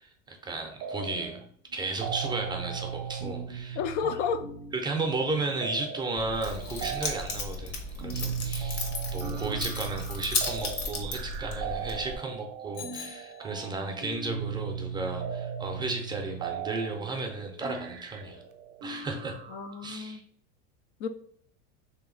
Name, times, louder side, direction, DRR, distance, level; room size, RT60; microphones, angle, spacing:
voice 1, 0.0-1.5 1.7-3.8 4.7-18.4 18.8-19.4 19.8-20.2, right 3 dB, 15° right, 2 dB, 0.4 m, -34 dB
sound 1, 0.8-1.4 1.7-20.0, right 7 dB, 50° right, 0.6 m, -38 dB
voice 2, 3.7-4.4 19.5-20.2 21.0-21.1, left 6 dB, 85° left, 9 dB, 0.6 m, -31 dB
Keys jangling, 6.2-12.2, left 3 dB, 60° left, 1.1 m, -35 dB
Bicycle bell, 12.7-14.0, left 10 dB, 45° left, 0.7 m, -45 dB
3.2 x 2.8 x 3.8 m, 0.62 s
supercardioid pair, 135°, 34 cm